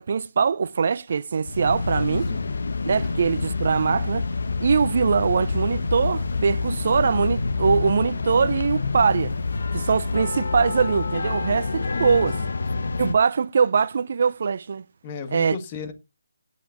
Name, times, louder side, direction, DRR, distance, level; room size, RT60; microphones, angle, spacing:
voice 1, 0.1-2.3 2.9-4.3 4.6-9.3 9.7-12.4 13.0-14.8 15.3-15.6, right 6 dB, 50° right, 0.6 m, -22 dB
sound 1, 1.4-13.2, left 3 dB, 60° left, 1.4 m, -27 dB
voice 2, 2.0-2.4 11.9-12.8 15.0-15.9, left 6 dB, 25° left, 1.6 m, -35 dB
16.5 x 8.5 x 2.6 m
figure-of-eight pair, 150°, 0 cm